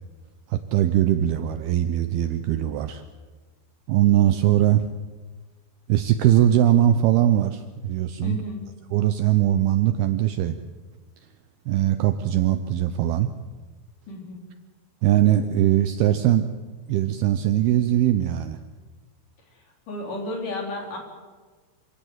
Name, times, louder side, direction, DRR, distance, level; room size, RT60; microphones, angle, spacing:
voice 1, 0.5-3.0 3.9-4.8 5.9-8.4 8.9-10.6 11.7-13.3 15.0-16.5 16.9-18.6, right 12 dB, 75° right, 9 dB, 2.4 m, -21 dB
voice 2, 8.2-8.6 14.1-14.4 19.9-21.0, left 2 dB, 50° left, 1 dB, 5.0 m, -32 dB
26.5 x 16.0 x 8.0 m, 1.4 s
omnidirectional pair, 5.1 m